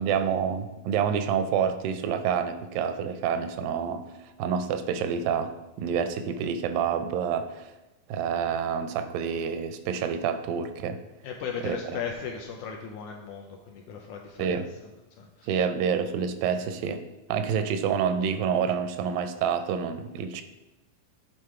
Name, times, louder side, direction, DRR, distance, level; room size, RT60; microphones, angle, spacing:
voice 1, 0.0-4.0 4.4-7.7 8.1-11.0 11.6-12.0 14.4-14.7 15.4-17.0 17.3-20.4, right 7 dB, 85° right, 10 dB, 2.3 m, -28 dB
voice 2, 11.2-14.6 15.2-15.5, left 6 dB, 85° left, 2 dB, 1.8 m, -37 dB
8.6 x 3.9 x 4.7 m, 1.0 s
omnidirectional pair, 3.9 m